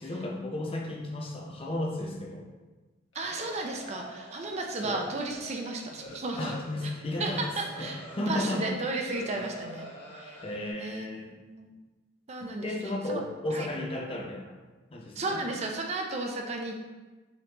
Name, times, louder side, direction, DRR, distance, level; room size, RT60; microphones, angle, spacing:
voice 1, 0.0-2.5 4.8-5.0 6.4-7.5 7.8-8.6 9.2-9.4 10.4-11.4 12.4-14.5 14.9-15.4, left 1 dB, 30° left, 0 dB, 0.5 m, -34 dB
sound 1, 3.1-8.6 9.1-10.7, equal, 80° left, 1.1 m, -46 dB
voice 2, 3.1-6.5 7.2-9.9 10.1-10.4 10.8-11.1 11.5-11.7 12.3-12.7 13.1-13.2 13.5-13.7 15.2-16.8, right 2 dB, 35° right, 2 dB, 0.4 m, -33 dB
5.0 x 3.0 x 2.9 m, 1.2 s
head